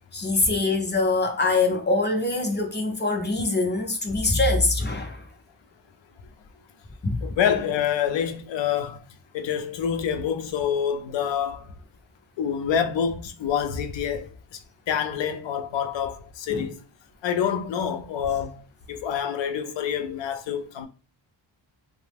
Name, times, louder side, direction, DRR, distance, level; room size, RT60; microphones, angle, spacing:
voice 1, 0.1-5.3 7.0-7.4 16.5-16.6, left 2 dB, 25° left, 0.5 m, -24 dB
voice 2, 7.2-9.0 9.3-11.7 12.4-14.6 14.9-16.8 17.2-18.6 18.9-20.9, left 8 dB, 70° left, 0.5 m, -27 dB
2.8 x 2.0 x 3.4 m
wide cardioid pair, 115°, 47 cm